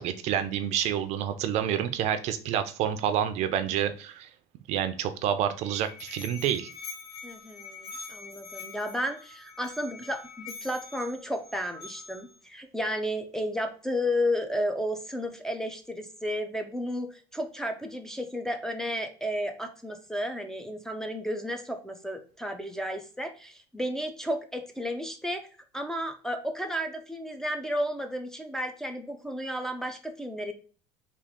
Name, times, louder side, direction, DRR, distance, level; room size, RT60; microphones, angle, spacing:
voice 1, 0.0-4.3 4.7-6.7, right 9 dB, 55° right, 10 dB, 0.5 m, -28 dB
Musical instrument, 5.4-12.4, left 4 dB, 50° left, 1.5 m, -45 dB
voice 2, 7.2-25.5 25.7-30.5, equal, 5° left, 3 dB, 0.4 m, -33 dB
3.6 x 2.4 x 3.5 m, 0.40 s
cardioid pair, 135°, 14 cm